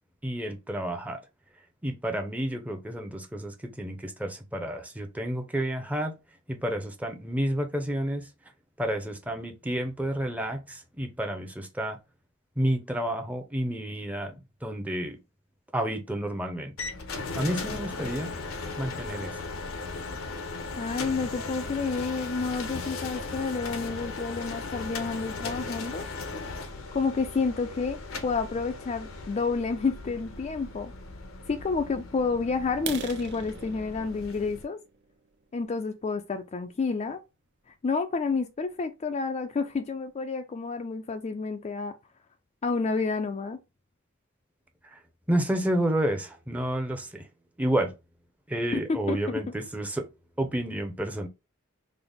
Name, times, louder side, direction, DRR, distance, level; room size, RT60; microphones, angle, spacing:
voice 1, 0.2-1.2 1.8-6.2 6.5-8.3 8.8-12.0 12.6-15.2 15.7-16.7 17.4-18.3 18.8-19.4 44.9-45.0 45.3-47.3 47.6-47.9 48.5-50.1 50.4-51.3, right 1 dB, 5° right, 0.6 m, -30 dB
sound 1, 16.8-34.6, left 3 dB, 80° left, 0.7 m, -37 dB
voice 2, 20.8-26.1 26.9-30.9 31.5-34.8 35.5-37.2 37.8-41.9 42.6-43.6 48.7-48.8 49.1-49.4, left 4 dB, 35° left, 0.3 m, -30 dB
sound 2, 32.7-36.5 37.0-37.2 37.7-37.8 38.2-38.4 38.7-38.8 39.2-39.3 39.6-40.1, right 7 dB, 55° right, 0.5 m, -42 dB
3.9 x 2.0 x 3.4 m
head